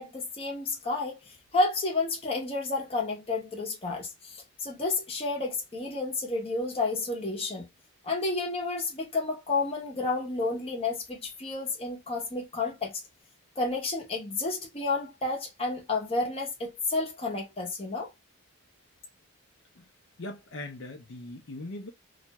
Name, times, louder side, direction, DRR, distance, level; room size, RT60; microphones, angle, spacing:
voice 1, 0.0-7.7 8.0-13.0 13.6-18.1, left 3 dB, 25° left, 0.8 m, -31 dB
voice 2, 20.2-21.9, left 2 dB, 55° left, 0.6 m, -40 dB
2.4 x 2.2 x 2.8 m
head